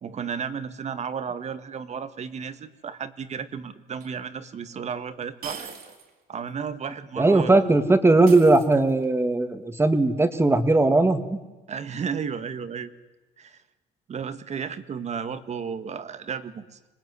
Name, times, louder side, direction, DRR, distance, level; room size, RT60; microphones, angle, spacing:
voice 1, 0.0-5.7 6.3-7.6 11.7-12.9 13.4-13.6 14.1-16.8, right 6 dB, 40° right, 12 dB, 1.8 m, -33 dB
sound 1, 4.0-4.1 5.4-6.1 6.5-6.6 8.3-9.1, right 6 dB, 60° right, 4.1 m, -41 dB
voice 2, 7.2-11.4, right 2 dB, 15° right, 9 dB, 2.2 m, -19 dB
25.5 x 20.0 x 9.8 m, 1.2 s
cardioid pair, 110°, 17 cm